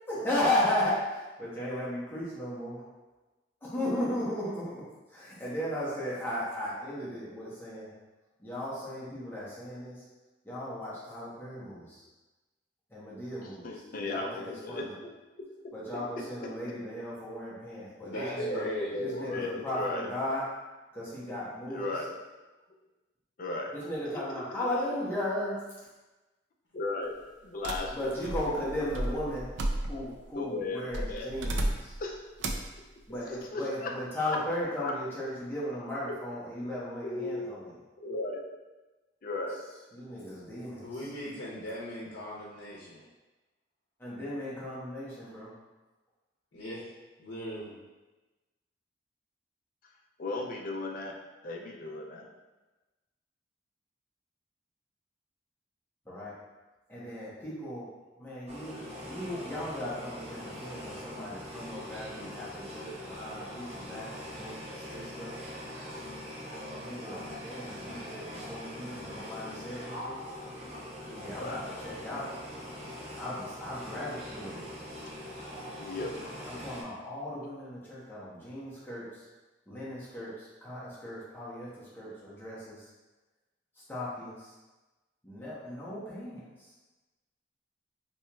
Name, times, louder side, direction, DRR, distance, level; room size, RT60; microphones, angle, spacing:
voice 1, 0.1-2.8 3.6-4.8 5.1-7.9 8.4-9.9 10.4-12.0 12.9-14.4 14.7-14.9 15.7-18.6 19.0-20.5 20.9-21.9 23.7-25.6 27.9-29.5 29.9-31.9 33.1-37.7 39.9-40.8 44.0-45.5 56.1-56.3 56.9-57.9 58.2-58.7 59.1-65.4 66.8-70.2 71.1-72.3 73.1-74.7 76.5-79.1 79.7-81.7 81.9-82.8 83.9-84.5 85.2-86.4, left 1 dB, 10° left, -8 dB, 0.8 m, -36 dB
voice 2, 13.4-15.1 15.9-16.1 18.4-20.1 21.7-22.1 23.4-23.7 24.1-24.7 26.7-27.1 27.4-28.8 30.3-31.3 32.0-32.2 33.3-34.4 34.8-34.9 37.0-37.6 38.0-38.5 39.2-39.6 50.2-51.1 51.4-52.3 71.4-71.6 75.8-76.4, left 2 dB, 50° left, 1 dB, 0.5 m, -36 dB
voice 3, 18.1-19.5 40.8-43.0 46.5-46.9 47.2-47.7, equal, 85° left, -6 dB, 0.7 m, -39 dB
sound 1, 27.6-30.2 30.9-32.0 32.4-32.7, right 1 dB, 85° right, 0.4 m, -33 dB
sound 2, 58.5-76.8, equal, 35° right, 0.8 m, -42 dB
4.2 x 2.9 x 2.3 m, 1.1 s
head